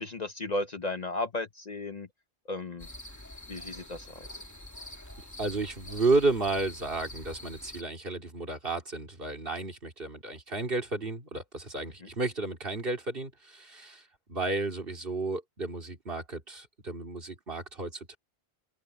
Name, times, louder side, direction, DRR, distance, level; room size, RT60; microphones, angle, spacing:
voice 1, 0.0-2.1 2.5-2.9 3.5-4.4, left 2 dB, 40° left, 0.9 m, -35 dB
sound 1, 2.8-7.8, left 1 dB, 15° left, 1.8 m, -45 dB
voice 2, 5.4-18.2, right 3 dB, 55° right, 3.0 m, -32 dB
open air
omnidirectional pair, 1.1 m